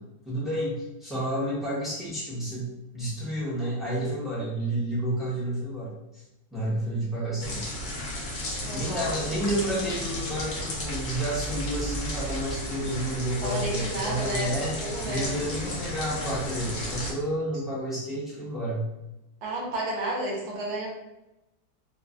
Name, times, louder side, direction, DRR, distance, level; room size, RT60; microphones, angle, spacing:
voice 1, 0.2-6.2 6.5-7.8 8.7-14.8 15.1-18.8, right 1 dB, ahead, -8 dB, 0.5 m, -30 dB
sound 1, 7.4-17.1, equal, 55° left, 0.7 m, -33 dB
voice 2, 8.6-9.1 9.5-9.9 13.4-14.5 14.8-15.4 19.4-20.9, right 1 dB, 80° right, -2 dB, 1.2 m, -32 dB
3.0 x 2.1 x 2.4 m, 0.92 s
omnidirectional pair, 1.6 m